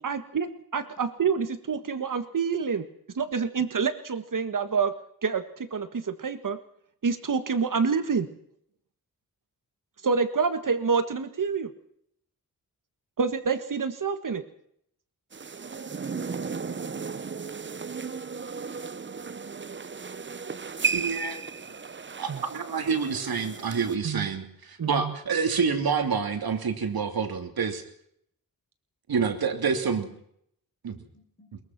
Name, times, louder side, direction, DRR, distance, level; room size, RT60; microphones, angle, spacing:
voice 1, 0.0-2.8 3.1-4.9 5.2-6.6 7.0-8.3 10.0-11.7 13.2-14.4 22.3-22.4 24.0-24.3 24.8-25.1, right 5 dB, 60° right, 10 dB, 1.7 m, -27 dB
sound 1, 15.3-24.0, right 5 dB, 30° right, 0.8 m, -35 dB
voice 2, 20.9-21.4 22.2-27.8 29.1-30.1 30.8-31.0, right 5 dB, 75° right, 6 dB, 3.0 m, -27 dB
voice 3, 30.9-31.5, left 2 dB, 35° left, 4 dB, 5.6 m, -59 dB
22.5 x 22.0 x 6.1 m, 0.70 s
wide cardioid pair, 105°, 36 cm